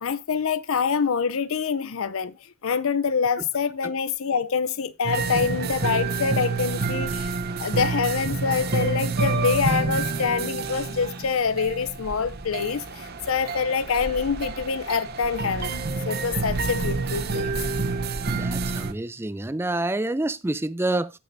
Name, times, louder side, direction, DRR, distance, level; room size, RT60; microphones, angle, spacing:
voice 1, 0.0-2.4 2.6-17.5, left 6 dB, 75° left, 0.6 m, -26 dB
sound 1, 5.0-18.9, right 4 dB, 50° right, 0.8 m, -28 dB
voice 2, 18.3-21.1, right 2 dB, 10° right, 0.4 m, -27 dB
16.0 x 6.5 x 2.6 m
head